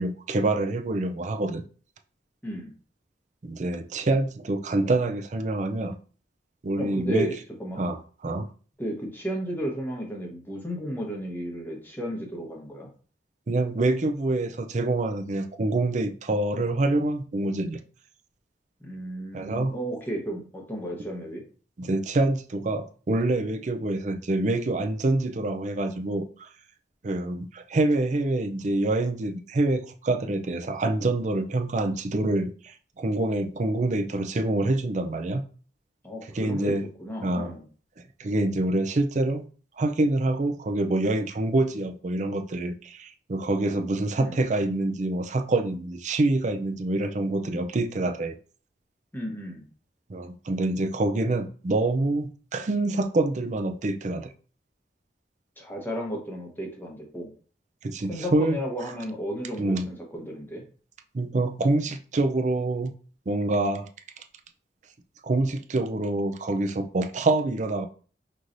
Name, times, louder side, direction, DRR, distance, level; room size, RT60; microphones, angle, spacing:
voice 1, 0.0-1.6 3.4-6.0 6.6-7.3 7.8-8.5 13.5-17.8 19.3-19.8 21.8-26.5 27.0-35.4 36.3-36.9 37.2-37.5 38.2-39.5 39.8-48.3 50.1-54.3 57.8-58.6 59.6-59.9 61.1-62.9 63.3-63.9 65.2-67.9, right 2 dB, 40° right, 7 dB, 0.4 m, -26 dB
voice 2, 2.4-2.7 6.8-7.3 7.6-7.8 8.8-12.9 18.8-21.4 36.0-36.7 37.0-37.7 44.2-44.4 49.1-49.7 55.6-57.3 58.1-60.6, equal, 10° left, 0 dB, 1.0 m, -33 dB
5.4 x 3.1 x 2.6 m, 0.41 s
head